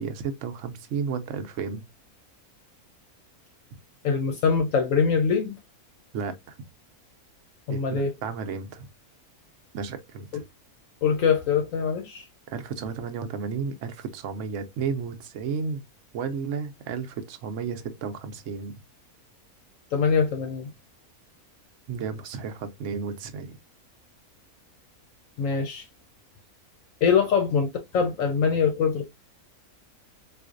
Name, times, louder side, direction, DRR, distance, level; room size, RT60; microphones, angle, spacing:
voice 1, 0.0-1.8 6.1-6.5 7.7-8.9 9.7-10.4 12.5-15.8 16.1-18.8 21.9-23.6, right 5 dB, 65° right, 0.9 m, -33 dB
voice 2, 4.0-5.6 7.7-8.1 11.0-12.2 19.9-20.7 25.4-25.8 27.0-29.1, left 6 dB, 70° left, 0.9 m, -23 dB
4.0 x 2.5 x 2.5 m
omnidirectional pair, 1.6 m